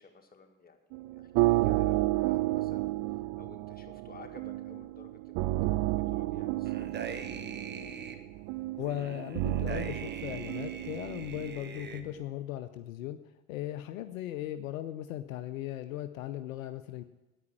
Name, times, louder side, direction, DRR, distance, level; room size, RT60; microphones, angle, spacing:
voice 1, 0.0-5.7 6.1-7.5, left 4 dB, 20° left, 3 dB, 1.8 m, -54 dB
sound 1, 0.9-12.1, right 18 dB, 45° right, 0.5 m, -32 dB
sound 2, 6.6-8.2 8.8-12.0, right 5 dB, 25° right, 1.0 m, -43 dB
voice 2, 8.8-13.2 13.5-17.0, left 13 dB, 70° left, 10 dB, 0.6 m, -38 dB
9.6 x 9.6 x 7.3 m, 1.1 s
figure-of-eight pair, 60°, 42 cm